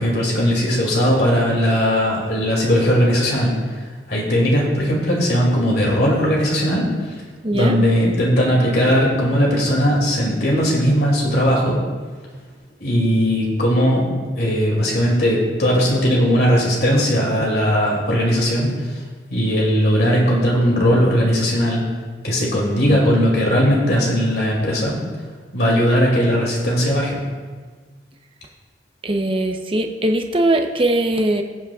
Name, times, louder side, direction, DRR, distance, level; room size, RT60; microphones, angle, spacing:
voice 1, 0.0-3.5 4.1-6.9 7.5-11.8 12.8-14.1 14.4-18.7 19.3-21.8 22.2-25.0 25.5-27.2, equal, 60° left, -3 dB, 2.6 m, -18 dB
voice 2, 7.4-7.8 29.0-31.4, right 1 dB, 30° right, 4 dB, 0.8 m, -20 dB
21.5 x 8.6 x 2.4 m, 1.5 s
head